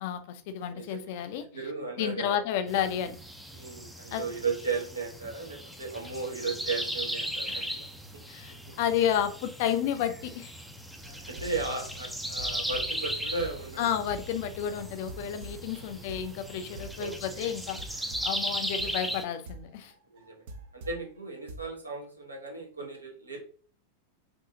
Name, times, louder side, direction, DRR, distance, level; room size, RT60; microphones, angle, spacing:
voice 1, 0.0-1.5 2.0-3.2 4.1-4.3 7.5-7.7 8.3-10.5 13.8-19.9, left 9 dB, 50° left, 0.5 m, -31 dB
voice 2, 0.7-1.1 1.5-2.4 3.5-7.9 8.1-8.2 11.0-13.8 15.9-16.0 17.0-17.5 18.8-19.0 20.1-20.5 20.7-23.4, right 4 dB, 80° right, 1.2 m, -36 dB
sound 1, 2.7-19.2, equal, ahead, 0.5 m, -37 dB
sound 2, 11.0-21.0 21.5-21.9, right 2 dB, 55° right, 0.6 m, -46 dB
5.1 x 2.7 x 2.7 m
figure-of-eight pair, 90°, 0 cm